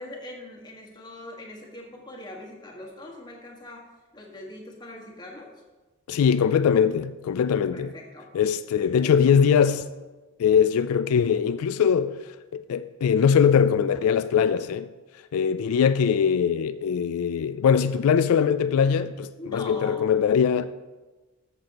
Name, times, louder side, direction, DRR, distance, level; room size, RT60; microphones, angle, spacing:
voice 1, 0.0-5.5 7.7-8.3 8.8-9.7 19.4-20.1, left 1 dB, 20° left, 1.5 m, -42 dB
voice 2, 6.1-7.9 8.3-9.8 10.4-14.9 15.3-20.7, left 7 dB, 85° left, 0.3 m, -22 dB
14.0 x 6.9 x 2.9 m
head